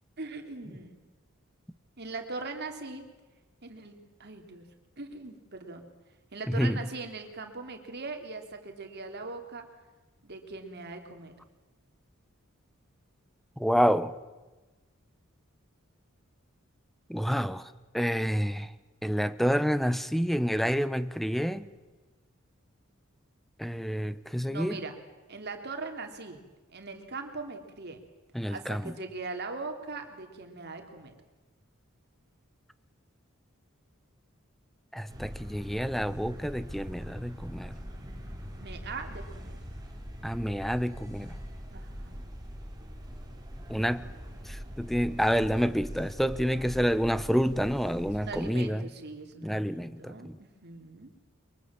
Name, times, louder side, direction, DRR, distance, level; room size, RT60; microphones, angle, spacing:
voice 1, 0.2-1.1 2.0-3.0 3.6-3.9 4.2-4.6 5.0-5.9 6.3-9.6 10.2-11.3 24.5-24.9 25.3-26.4 26.7-28.0 28.5-31.1 38.6-39.6 41.7-42.1 48.2-51.1, right 3 dB, 55° right, 3.1 m, -40 dB
voice 2, 6.5-6.8 13.6-14.1 17.1-18.7 19.0-21.7 23.6-24.8 28.3-29.0 34.9-37.8 40.2-41.4 43.7-44.1 44.5-48.9 49.4-50.4, equal, ahead, 0.8 m, -28 dB
sound 1, 35.1-48.5, equal, 20° right, 4.1 m, -42 dB
23.0 x 23.0 x 7.5 m
head